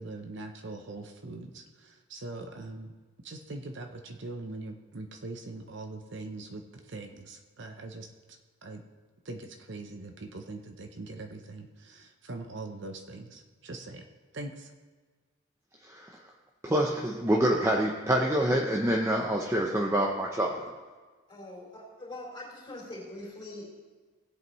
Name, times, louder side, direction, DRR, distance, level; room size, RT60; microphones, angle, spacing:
voice 1, 0.0-2.9 3.2-8.1 8.6-8.8 9.2-14.1 14.3-14.7, right 2 dB, 55° right, 5 dB, 0.7 m, -42 dB
voice 2, 16.6-20.7, right 1 dB, 10° right, -1 dB, 0.6 m, -26 dB
voice 3, 21.3-23.9, left 1 dB, 20° left, -5 dB, 3.5 m, -43 dB
17.5 x 8.1 x 3.1 m, 1.4 s
head